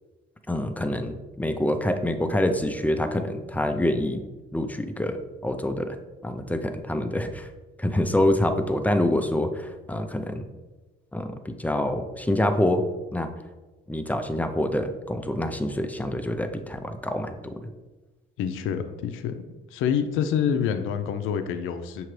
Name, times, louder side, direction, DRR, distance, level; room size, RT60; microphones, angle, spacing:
voice 1, 0.5-4.2 4.5-6.0 6.2-7.5 7.8-10.4 11.1-12.8 13.1-13.3 13.9-17.7, left 1 dB, 10° left, 7 dB, 0.4 m, -26 dB
voice 2, 18.4-19.4 19.7-22.1, left 8 dB, 90° left, 8 dB, 0.4 m, -27 dB
5.8 x 2.9 x 3.1 m, 1.2 s
cardioid pair, 90°, 20 cm